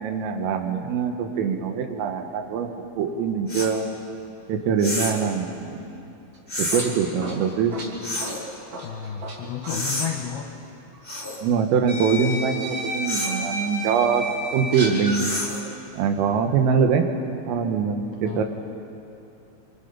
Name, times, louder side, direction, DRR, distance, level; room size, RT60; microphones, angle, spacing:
voice 1, 0.0-2.7 3.0-3.9 4.5-5.9 6.6-7.7 11.4-14.2 14.5-15.4 15.9-17.1 17.5-18.4, right 6 dB, 85° right, 5 dB, 4.0 m, -23 dB
sound 1, 3.5-3.7 4.8-5.3 6.5-6.9 8.0-8.4 9.6-10.1 11.0-11.4 13.0-13.4 15.1-15.7, left 1 dB, 10° left, 1.8 m, -29 dB
sound 2, 6.3-9.4 9.6-9.8 10.9-11.0 11.9-15.2, equal, 40° right, 4.0 m, -32 dB
voice 2, 8.7-10.5 18.2-18.4, left 8 dB, 75° left, 2 dB, 2.4 m, -32 dB
26.0 x 25.5 x 5.6 m, 2.7 s
omnidirectional pair, 5.8 m